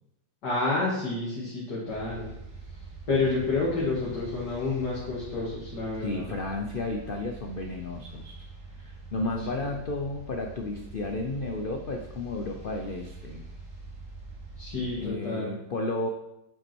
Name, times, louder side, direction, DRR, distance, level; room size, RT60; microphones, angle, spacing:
voice 1, 0.4-2.3 3.1-6.3 9.5-9.6 14.6-15.6, left 3 dB, 60° left, -8 dB, 2.7 m, -29 dB
sound 1, 1.9-15.1, right 3 dB, 45° right, 2.1 m, -44 dB
voice 2, 6.0-8.5 8.8-13.5 15.0-16.1, left 2 dB, 90° left, 2 dB, 0.4 m, -33 dB
8.4 x 6.0 x 4.5 m, 0.85 s
omnidirectional pair, 2.0 m